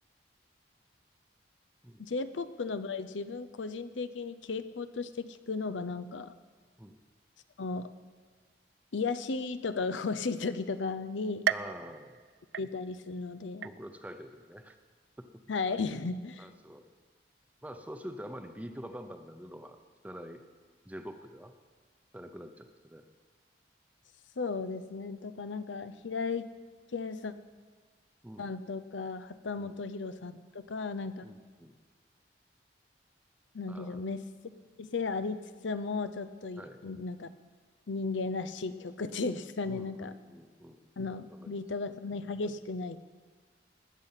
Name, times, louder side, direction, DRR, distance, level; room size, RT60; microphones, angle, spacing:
voice 1, 2.0-6.4 7.6-7.9 8.9-11.5 12.6-13.7 15.5-16.5 24.4-26.5 26.9-27.3 28.4-31.2 33.5-34.2 34.8-37.3 37.9-40.1 41.0-43.0, left 4 dB, 90° left, 12 dB, 0.6 m, -35 dB
voice 2, 11.5-12.2 13.6-14.8 15.2-15.3 16.4-16.8 17.6-19.8 20.0-20.4 20.9-21.5 22.1-23.0 28.2-28.5 29.6-29.8 31.2-31.8 33.7-34.0 36.6-36.8 39.6-40.8 41.3-41.6, equal, 10° right, 7 dB, 0.7 m, -46 dB
sound 1, 11.5-13.2 13.6-14.2 14.7-14.8 15.8-15.9, right 8 dB, 65° right, 0.3 m, -36 dB
19.5 x 8.3 x 5.7 m, 1.5 s
head